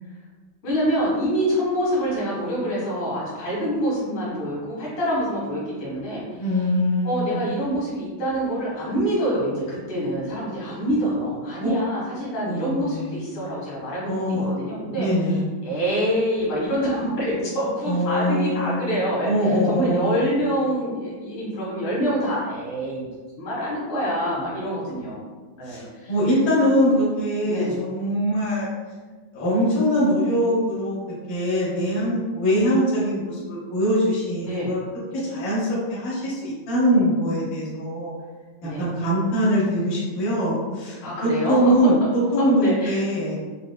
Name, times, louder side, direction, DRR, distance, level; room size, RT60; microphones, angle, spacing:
voice 1, 0.6-6.4 7.0-15.1 15.6-23.0 23.4-25.2 25.6-26.1 27.5-27.8 34.5-34.7 38.6-38.9 41.0-41.7 42.6-43.0, equal, 90° left, -6 dB, 2.2 m, -26 dB
voice 2, 6.4-7.4 11.6-11.7 12.4-13.4 14.0-14.5 14.9-15.5 17.9-18.9 19.2-20.2 25.7-28.7 29.3-31.0 31.3-34.8 35.2-38.1 38.6-43.4, equal, 70° left, -8 dB, 1.7 m, -22 dB
4.8 x 2.0 x 2.2 m, 1.4 s
omnidirectional pair, 2.2 m